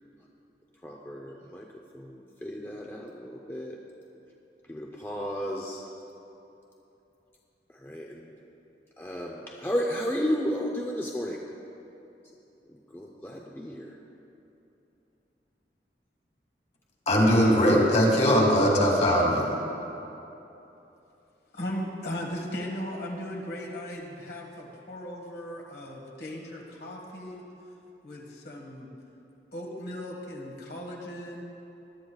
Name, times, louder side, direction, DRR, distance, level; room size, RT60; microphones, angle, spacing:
voice 1, 0.8-1.7 1.9-3.8 4.7-5.8 7.7-8.4 9.0-11.4 12.7-14.0, equal, 10° left, -1 dB, 0.6 m, -33 dB
voice 2, 17.1-19.6, equal, 40° left, -1 dB, 2.0 m, -20 dB
voice 3, 21.5-27.4 28.0-28.9 29.5-31.4, equal, 65° left, -1 dB, 1.6 m, -37 dB
20.5 x 11.5 x 2.4 m, 3.0 s
head